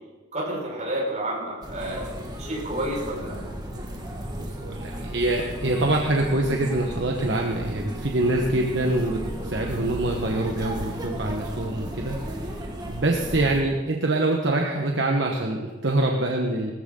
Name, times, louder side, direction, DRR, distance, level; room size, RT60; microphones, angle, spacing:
voice 1, 0.3-2.1 2.4-3.4, right 1 dB, 40° right, -3 dB, 5.3 m, -30 dB
sound 1, 1.6-13.6, equal, 20° right, 1.8 m, -34 dB
voice 2, 4.4-9.2 9.4-16.7, right 2 dB, 60° right, 1 dB, 1.3 m, -25 dB
19.0 x 14.0 x 3.9 m, 1.3 s
head